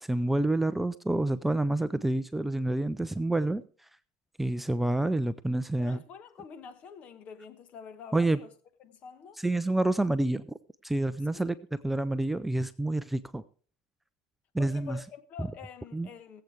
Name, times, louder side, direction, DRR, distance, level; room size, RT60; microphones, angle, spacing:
voice 1, 0.0-3.6 4.4-6.0 8.1-8.4 9.4-10.5 10.8-11.6 11.8-13.4 14.5-15.0 15.4-15.5 15.9-16.1, right 2 dB, 5° right, 0.4 m, -28 dB
voice 2, 5.8-8.5 8.8-9.4 11.3-11.5 14.6-16.4, left 7 dB, 45° left, 1.2 m, -47 dB
20.0 x 7.9 x 3.4 m
supercardioid pair, 115°, 3 cm